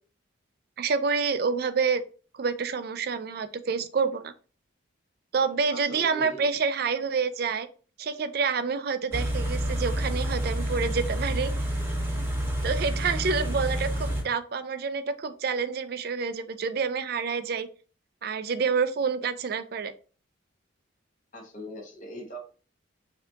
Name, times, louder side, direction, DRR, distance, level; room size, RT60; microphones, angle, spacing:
voice 1, 0.8-2.0 2.3-4.3 5.3-7.7 8.0-11.5 12.6-17.7 18.2-19.9, right 5 dB, 50° right, 11 dB, 0.4 m, -28 dB
voice 2, 5.7-6.5 21.3-22.4, equal, 40° left, 0 dB, 1.2 m, -40 dB
Car / Idling, 9.1-14.2, right 1 dB, 10° right, 0.8 m, -29 dB
5.6 x 2.8 x 2.4 m, 0.38 s
head